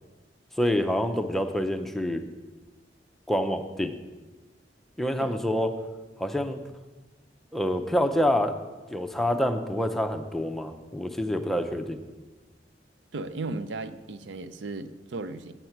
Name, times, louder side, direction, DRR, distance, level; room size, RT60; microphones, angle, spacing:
voice 1, 0.6-2.2 3.3-3.9 5.0-5.7 6.2-6.6 7.5-8.6 8.9-12.0, equal, ahead, 6 dB, 0.5 m, -27 dB
voice 2, 13.1-15.5, right 3 dB, 90° right, 12 dB, 0.5 m, -35 dB
8.0 x 7.7 x 5.8 m, 1.2 s
head